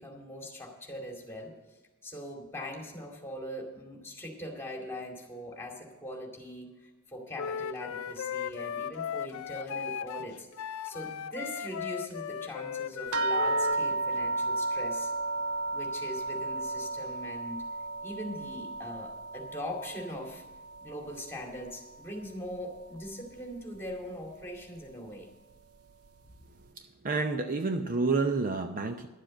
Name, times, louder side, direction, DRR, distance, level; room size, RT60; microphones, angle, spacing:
voice 1, 0.0-1.5 2.0-15.1 15.7-17.6 18.0-20.4 20.8-25.3, equal, 10° left, 0 dB, 2.3 m, -41 dB
Wind instrument woodwind instrument, 7.3-13.8, left 8 dB, 65° left, 0.4 m, -37 dB
sound 1, 13.1-21.9 22.3-23.1 23.9-24.0 24.4-24.6, right 2 dB, 75° right, 0.6 m, -33 dB
voice 2, 26.7-29.1, right 3 dB, 40° right, 7 dB, 0.6 m, -29 dB
11.5 x 7.5 x 7.6 m, 1.1 s
head